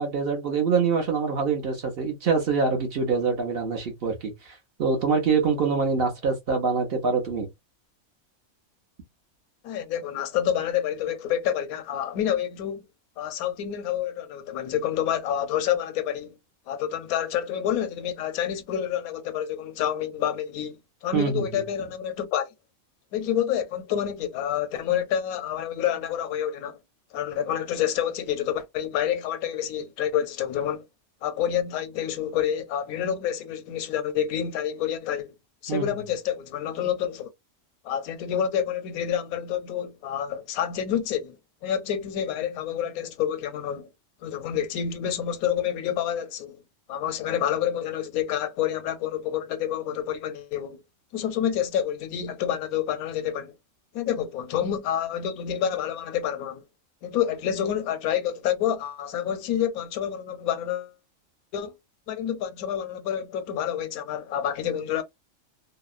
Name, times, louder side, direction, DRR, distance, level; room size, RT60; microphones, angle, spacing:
voice 1, 0.0-7.5 21.1-21.5 35.7-35.9, right 5 dB, 55° right, 0.8 m, -25 dB
voice 2, 9.6-12.8 13.2-16.4 16.7-22.5 23.1-26.8 27.1-30.9 31.2-35.3 35.6-37.3 37.8-41.4 41.6-43.9 44.2-46.6 46.9-50.8 51.1-53.6 53.9-56.6 57.0-60.9 61.5-61.7 62.1-65.0, left 9 dB, 85° left, 1.0 m, -28 dB
2.8 x 2.0 x 2.3 m
omnidirectional pair, 1.5 m